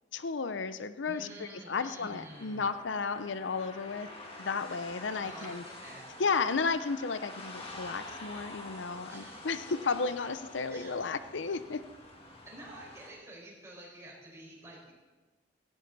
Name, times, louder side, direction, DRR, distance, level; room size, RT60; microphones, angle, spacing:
voice 1, 0.1-4.1 4.4-5.6 6.2-11.8, left 4 dB, 80° left, 12 dB, 0.6 m, -33 dB
voice 2, 1.0-2.6 5.2-6.0 9.1-9.5 10.7-10.9 12.5-14.9, right 1 dB, 15° right, -5 dB, 5.2 m, -49 dB
sound 1, 1.7-13.1, left 1 dB, 30° left, 2.2 m, -47 dB
17.0 x 16.5 x 4.1 m, 1.3 s
head